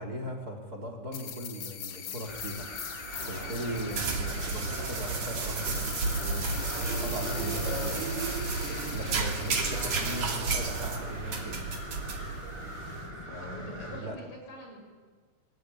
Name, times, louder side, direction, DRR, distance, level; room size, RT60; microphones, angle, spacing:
voice 1, 0.0-2.7 3.2-6.5 6.8-8.0 8.9-11.7 13.3-14.2, right 1 dB, 30° right, 4 dB, 3.5 m, -39 dB
sound 1, 1.1-10.3, left 8 dB, 55° left, 1.8 m, -42 dB
sound 2, 2.3-14.0, equal, 10° left, 5.8 m, -42 dB
sound 3, 3.0-13.0, right 4 dB, 55° right, 3.9 m, -32 dB
voice 2, 9.4-9.8 13.4-14.8, equal, 85° left, 1 dB, 8.5 m, -46 dB
23.0 x 22.5 x 9.8 m, 1.5 s
omnidirectional pair, 3.8 m